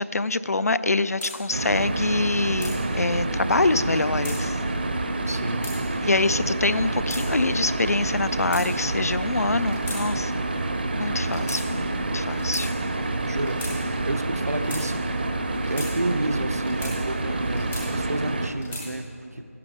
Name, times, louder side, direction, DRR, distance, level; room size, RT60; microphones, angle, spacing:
voice 1, 0.0-4.6 6.0-10.4 10.9-12.7, left 3 dB, 90° left, 15 dB, 0.4 m, -25 dB
sound 1, 1.2-1.3 2.2-2.7 3.8-4.4 5.2-5.8 6.6-7.2 8.1-9.0 9.6-10.0 10.3-10.5 11.2-11.6 12.3-12.7 13.3-13.7 14.4-14.8 15.5-15.9 16.5-16.9 17.4-18.1 18.5-18.9, left 2 dB, 5° left, 0.3 m, -38 dB
sound 2, 1.5-18.5, right 2 dB, 40° right, 0.6 m, -28 dB
voice 2, 5.3-5.7 13.2-15.0 15.7-19.5, right 2 dB, 85° right, 8 dB, 0.7 m, -31 dB
12.0 x 11.0 x 3.6 m, 2.5 s
figure-of-eight pair, 170°, 8 cm